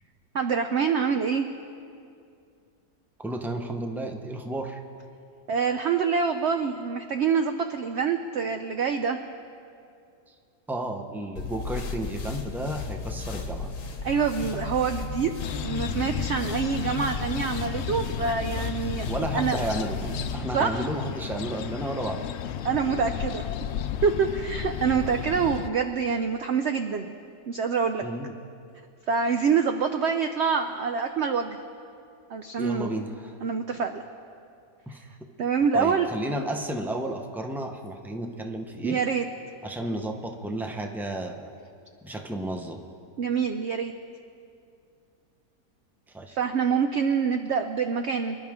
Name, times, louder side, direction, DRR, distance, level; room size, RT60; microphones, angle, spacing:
voice 1, 0.3-1.5 5.5-9.2 14.0-15.3 15.6-19.6 20.5-20.8 22.6-23.4 24.0-27.1 27.5-28.0 29.1-31.6 32.3-33.0 33.4-34.0 35.4-36.1 38.8-39.3 43.2-43.9 46.3-48.4, right 6 dB, 70° right, 6 dB, 0.6 m, -26 dB
voice 2, 3.2-4.8 10.7-13.7 14.1-14.3 19.1-22.3 28.0-28.3 32.6-33.3 34.9-35.0 35.7-39.0 39.6-41.5 42.0-42.8 46.1-46.4, right 1 dB, 5° right, 3 dB, 0.3 m, -32 dB
sound 1, 11.4-20.4, left 4 dB, 55° left, 1.3 m, -34 dB
sound 2, 15.4-25.7, left 9 dB, 85° left, 0.6 m, -34 dB
26.0 x 11.0 x 3.6 m, 2.5 s
omnidirectional pair, 1.7 m